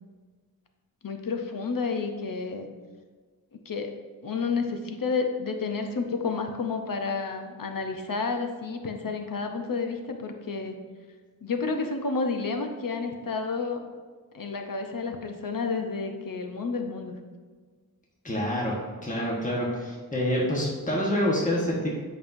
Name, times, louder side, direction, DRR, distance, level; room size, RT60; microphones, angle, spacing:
voice 1, 1.0-2.7 3.5-3.9 4.2-10.7 11.4-13.8 14.3-17.2, left 4 dB, 60° left, 4 dB, 0.8 m, -30 dB
voice 2, 18.2-21.9, equal, 20° left, -4 dB, 1.3 m, -27 dB
8.4 x 5.5 x 2.6 m, 1.5 s
wide cardioid pair, 70°, 37 cm